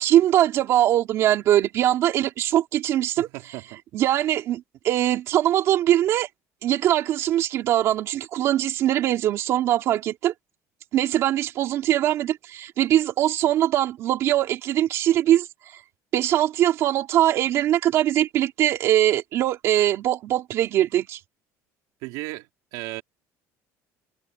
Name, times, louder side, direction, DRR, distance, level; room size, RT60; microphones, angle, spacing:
voice 1, 0.0-3.3 3.9-6.3 6.6-10.3 10.9-15.5 15.7-15.8 16.1-21.2, right 12 dB, 45° right, 2.7 m, -22 dB
voice 2, 3.2-3.8 22.0-22.5 22.7-23.0, right 20 dB, 80° right, 3.3 m, -35 dB
cardioid pair, 175°, 6 cm